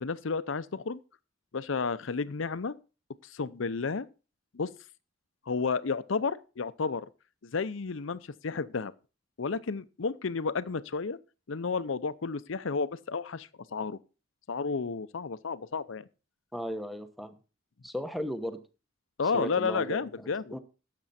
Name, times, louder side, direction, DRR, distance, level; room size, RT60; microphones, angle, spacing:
voice 1, 0.0-1.0 1.5-2.7 3.2-4.1 4.5-4.7 5.5-7.1 7.4-8.9 9.4-11.2 11.5-14.0 14.5-16.1 19.2-20.6, left 4 dB, 75° left, 0.6 m, -32 dB
voice 2, 16.5-17.4 17.8-18.6 19.3-20.0 20.5-20.6, equal, ahead, 0.9 m, -35 dB
12.0 x 7.7 x 4.2 m
head